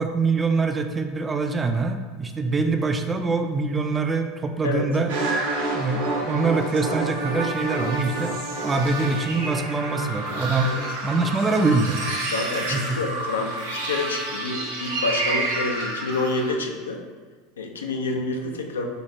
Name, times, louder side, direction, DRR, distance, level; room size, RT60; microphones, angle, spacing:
voice 1, 0.0-5.1 5.7-10.7 11.0-12.0 12.7-13.0, right 3 dB, 20° right, 6 dB, 0.3 m, -24 dB
sound 1, 5.1-16.5, right 2 dB, 75° right, 0.6 m, -29 dB
voice 2, 12.3-17.0 17.6-18.9, left 3 dB, 85° left, 3 dB, 0.4 m, -28 dB
4.0 x 2.4 x 3.2 m, 1.4 s
hypercardioid pair, 80°, 0 cm